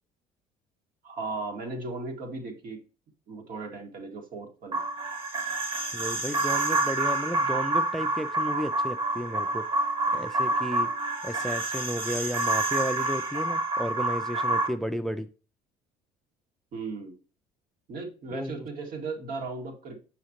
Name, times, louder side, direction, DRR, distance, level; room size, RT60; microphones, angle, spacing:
voice 1, 1.0-2.8 3.3-4.8 16.7-17.2 17.9-20.0, right 3 dB, 60° right, 2.0 m, -36 dB
sound 1, 4.7-14.7, right 2 dB, 35° right, 1.5 m, -28 dB
voice 2, 5.9-9.7 10.1-10.9 11.2-15.3 18.3-18.7, equal, ahead, 0.4 m, -33 dB
6.1 x 5.7 x 2.9 m
supercardioid pair, 90°, 16 cm